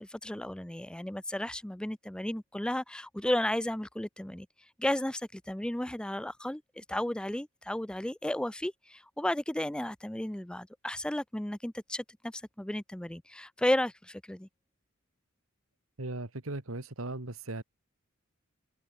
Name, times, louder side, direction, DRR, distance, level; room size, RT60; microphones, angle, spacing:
voice 1, 0.0-4.5 4.8-14.5, left 1 dB, 5° left, 0.4 m, -33 dB
voice 2, 16.0-17.6, right 2 dB, 90° right, 1.9 m, -37 dB
head